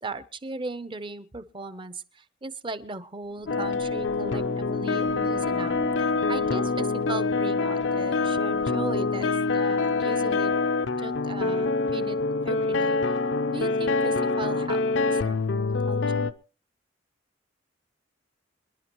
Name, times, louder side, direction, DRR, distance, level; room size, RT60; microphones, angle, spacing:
voice 1, 0.0-5.8 6.3-10.5 11.0-12.2 12.4-13.0 13.5-16.3, right 3 dB, 25° right, 14 dB, 0.7 m, -37 dB
sound 1, 3.3-11.0, equal, 10° left, 0.6 m, -42 dB
sound 2, 3.5-16.3, left 3 dB, 70° left, 0.6 m, -25 dB
27.5 x 10.5 x 3.0 m, 0.35 s
head